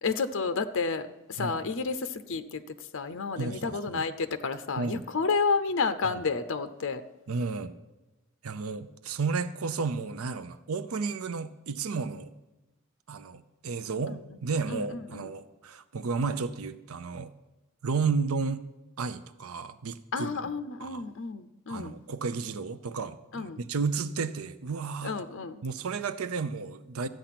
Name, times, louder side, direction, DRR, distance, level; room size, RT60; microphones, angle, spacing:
voice 1, 0.0-2.6 2.9-7.0 14.1-14.2 14.7-15.3 20.1-22.0 23.3-23.6 25.0-25.6, left 4 dB, 65° left, 11 dB, 0.7 m, -31 dB
voice 2, 3.4-4.0 4.8-5.0 6.1-6.2 7.3-7.7 8.4-12.3 13.1-17.3 17.8-18.6 19.0-20.5 20.8-21.0 21.7-25.2 25.6-27.1, right 4 dB, 85° right, 14 dB, 0.6 m, -32 dB
13.5 x 9.0 x 5.9 m, 1.1 s
head